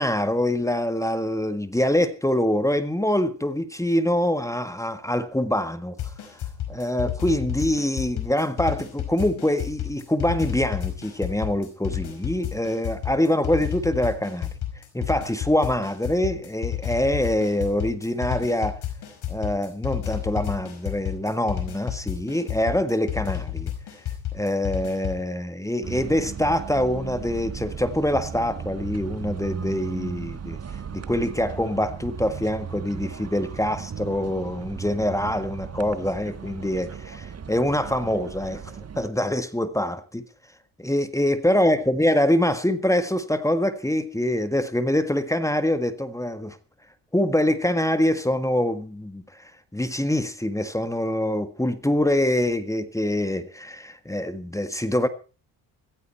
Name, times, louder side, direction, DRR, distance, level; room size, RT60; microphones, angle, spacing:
voice 1, 0.0-5.9 6.7-14.5 14.9-18.8 19.3-23.7 24.3-30.6 30.9-40.3 40.8-46.6 47.1-55.1, left 1 dB, 5° left, 10 dB, 1.6 m, -24 dB
sound 1, 6.0-25.2, left 11 dB, 70° left, 5.2 m, -31 dB
sound 2, 25.8-39.1, right 6 dB, 35° right, 1.5 m, -36 dB
15.5 x 15.5 x 4.4 m, 0.34 s
supercardioid pair, 75°, 42 cm